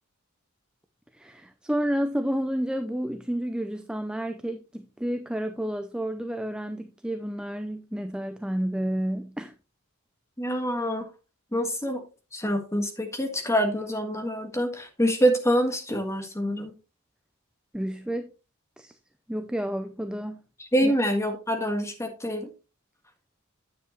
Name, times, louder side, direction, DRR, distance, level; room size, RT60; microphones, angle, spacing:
voice 1, 1.1-9.5 17.7-18.3 18.8-18.9 19.3-20.4 20.8-20.9, equal, 5° right, 0.5 m, -30 dB
voice 2, 10.4-11.1 11.5-12.0 12.3-16.7 20.7-22.5, equal, 15° left, 1.7 m, -26 dB
9.7 x 7.7 x 3.1 m
head